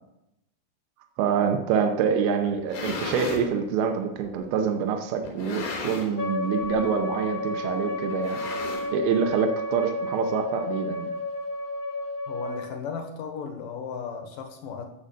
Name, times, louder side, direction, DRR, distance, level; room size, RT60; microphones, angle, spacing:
voice 1, 1.2-8.4 8.9-11.1, right 6 dB, 75° right, 5 dB, 2.7 m, -26 dB
sound 1, 2.5-3.5 4.2-4.3 5.2-6.3 6.6-6.9 7.1-7.2 8.1-9.2, left 3 dB, 90° left, 5.7 m, -34 dB
Wind instrument woodwind instrument, 6.2-12.7, left 2 dB, 45° left, 1.2 m, -31 dB
voice 2, 12.3-14.9, left 6 dB, 65° left, 5 dB, 2.5 m, -35 dB
14.5 x 7.8 x 5.3 m, 0.86 s
omnidirectional pair, 4.7 m